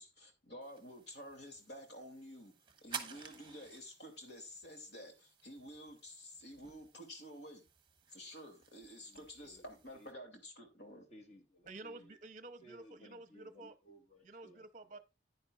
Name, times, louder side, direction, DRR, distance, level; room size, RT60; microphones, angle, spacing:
voice 1, 0.0-2.5 2.8-7.6 8.1-11.1, equal, 65° left, 2.6 m, -51 dB
sound 1, 0.6-10.1, right 7 dB, 25° right, 1.0 m, -53 dB
voice 2, 9.1-9.6 9.9-10.1 11.1-12.2 12.6-14.6, equal, 35° left, 1.6 m, -59 dB
voice 3, 11.7-13.8 14.2-15.0, right 2 dB, 40° right, 0.7 m, -51 dB
10.0 x 9.7 x 2.4 m
head